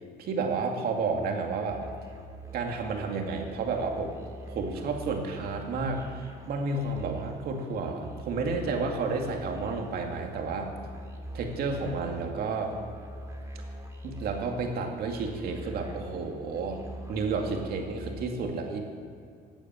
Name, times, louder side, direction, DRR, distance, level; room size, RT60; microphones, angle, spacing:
voice 1, 0.2-1.8 2.5-4.1 4.5-10.7 11.3-12.7 14.0-16.8 17.1-18.8, right 4 dB, 65° right, 2 dB, 2.4 m, -31 dB
Musical instrument, 1.7-18.2, equal, 15° right, 2.4 m, -44 dB
17.0 x 8.9 x 7.4 m, 2.2 s
cardioid pair, 110°, 17 cm